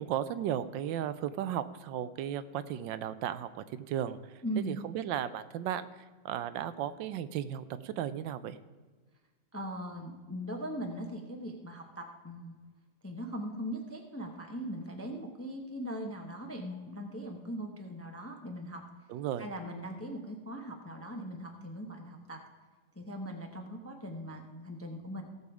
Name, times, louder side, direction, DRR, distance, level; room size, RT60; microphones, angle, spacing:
voice 1, 0.0-8.6 19.1-19.5, right 10 dB, 80° right, 13 dB, 1.3 m, -35 dB
voice 2, 4.4-4.8 9.5-12.6 13.0-18.8 19.4-22.4 23.0-25.2, equal, 10° left, 3 dB, 0.6 m, -40 dB
16.5 x 7.0 x 4.9 m, 1.3 s
omnidirectional pair, 2.0 m